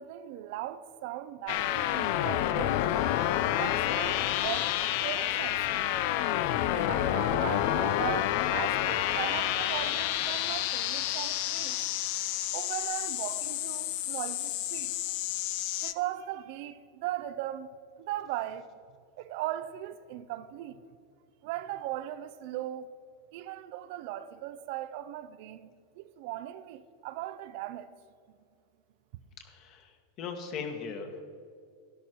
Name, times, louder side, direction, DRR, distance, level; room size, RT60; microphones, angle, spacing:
voice 1, 0.0-2.8 3.6-4.7 5.0-5.9 6.7-11.8 12.5-14.9 15.8-17.7 18.0-18.7 19.1-20.8 21.4-22.9 23.3-27.9 28.3-28.4, right 13 dB, 60° right, 0.6 m, -38 dB
sound 1, 1.5-15.9, left 13 dB, 60° left, 0.5 m, -29 dB
voice 2, 29.4-31.2, left 5 dB, 45° left, 1.7 m, -39 dB
13.0 x 11.0 x 4.6 m
supercardioid pair, 130°, 0 cm